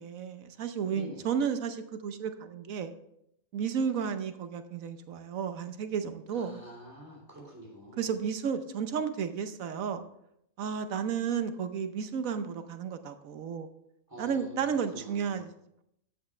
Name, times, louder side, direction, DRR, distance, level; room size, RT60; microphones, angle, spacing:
voice 1, 0.0-2.9 3.5-6.6 8.0-10.0 10.6-13.7 14.2-15.5, right 7 dB, 70° right, 9 dB, 1.2 m, -32 dB
voice 2, 0.9-1.3 6.3-8.1 14.1-15.5, equal, 15° right, -2 dB, 3.1 m, -47 dB
13.5 x 8.2 x 3.3 m, 0.77 s
omnidirectional pair, 1.5 m